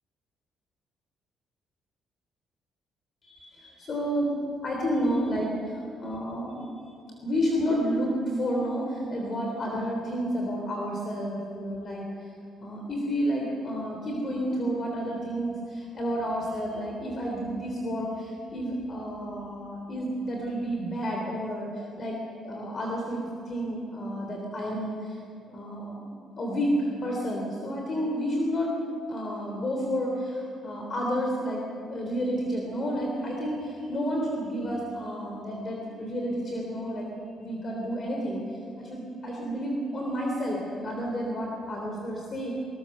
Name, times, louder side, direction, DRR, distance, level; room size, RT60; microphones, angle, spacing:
voice 1, 3.2-4.3 4.6-7.0 7.2-12.3 12.6-22.2 22.4-25.2 25.5-26.0 26.4-28.7 29.1-37.1 37.4-38.4 38.8-42.5, equal, 35° left, 0 dB, 3.3 m, -30 dB
22.5 x 20.0 x 6.6 m, 2.4 s
cardioid pair, 150°, 0 cm